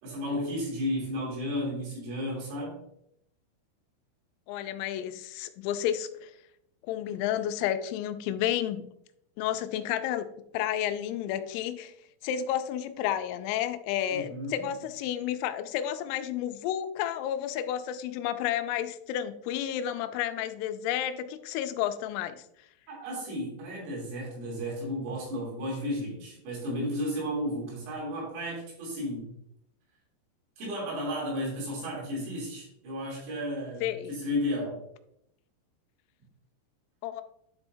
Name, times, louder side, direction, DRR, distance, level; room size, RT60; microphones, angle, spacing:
voice 1, 0.0-2.8 14.1-14.7 22.9-29.3 30.6-34.8, equal, 85° right, -5 dB, 5.7 m, -33 dB
voice 2, 4.5-6.3 6.9-8.8 9.4-10.3 10.5-11.9 12.2-22.4 33.8-34.1 37.0-37.2, left 11 dB, 90° left, 9 dB, 3.2 m, -31 dB
11.0 x 5.6 x 2.6 m, 0.78 s
omnidirectional pair, 5.7 m